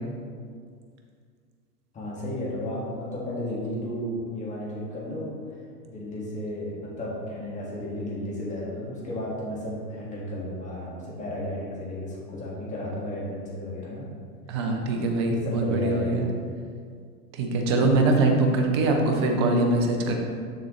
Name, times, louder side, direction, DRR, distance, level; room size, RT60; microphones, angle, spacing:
voice 1, 1.9-5.3 5.9-14.1 15.2-16.3, left 1 dB, 15° left, -5 dB, 1.8 m, -33 dB
voice 2, 14.5-16.2 17.3-20.1, right 2 dB, 20° right, 2 dB, 0.4 m, -23 dB
6.8 x 6.6 x 3.2 m, 2.1 s
hypercardioid pair, 120°, 48 cm